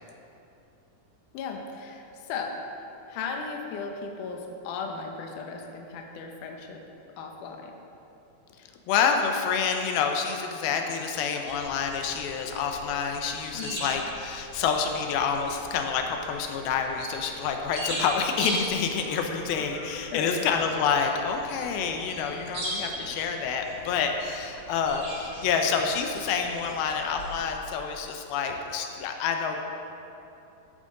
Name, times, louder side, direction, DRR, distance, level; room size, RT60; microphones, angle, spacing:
voice 1, 1.3-2.6 3.1-6.8 7.2-7.7 13.5-13.9 20.1-20.4, left 5 dB, 70° left, 2 dB, 2.2 m, -36 dB
voice 2, 8.9-29.6, left 6 dB, 85° left, 4 dB, 2.6 m, -28 dB
sound 1, 11.1-11.4 12.5-12.8 13.9-14.1 15.1-15.3 16.3-16.5 17.8-18.0 19.3-19.5 21.0-21.3 22.1-22.4 22.9-23.2 23.8-24.0 25.5-25.6 26.9-27.2 28.5-28.7, right 2 dB, 60° right, 3.2 m, -51 dB
sound 2, 11.5-27.5, right 1 dB, 45° right, 3.4 m, -40 dB
13.5 x 9.0 x 3.8 m, 2.8 s
omnidirectional pair, 4.3 m